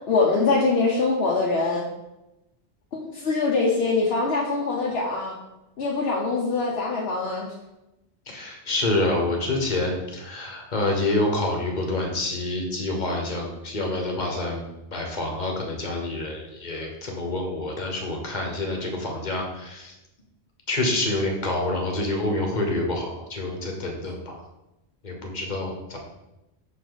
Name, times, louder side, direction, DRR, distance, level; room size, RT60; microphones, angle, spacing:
voice 1, 0.1-1.8 2.9-5.4 5.8-7.5, left 3 dB, 65° left, -3 dB, 1.0 m, -23 dB
voice 2, 8.3-19.9 20.7-24.4 25.0-26.0, left 2 dB, 45° left, 1 dB, 1.2 m, -27 dB
6.1 x 4.9 x 3.9 m, 0.97 s
omnidirectional pair, 1.2 m